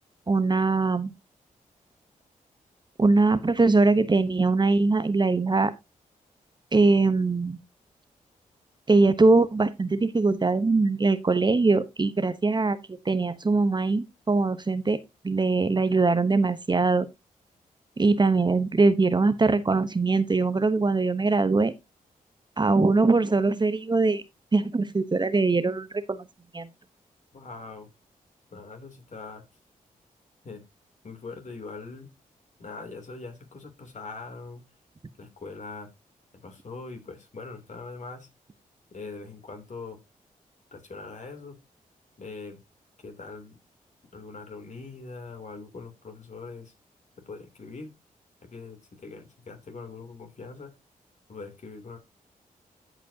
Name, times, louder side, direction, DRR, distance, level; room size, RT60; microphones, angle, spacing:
voice 1, 0.3-1.1 3.0-5.7 6.7-7.6 8.9-15.0 15.2-17.1 18.0-21.7 22.6-24.2 24.5-26.3 26.5-26.7, right 3 dB, 30° right, 0.9 m, -22 dB
voice 2, 27.3-27.9 28.5-29.4 30.4-30.6 31.0-32.1 32.6-34.6 35.2-35.9 36.4-38.3 38.9-40.0 40.7-41.6 42.2-42.6 43.0-43.6 44.1-46.7 47.2-47.9 48.4-50.7 51.3-52.0, left 3 dB, 55° left, 3.0 m, -42 dB
15.5 x 5.2 x 2.8 m
cardioid pair, 60°, 15 cm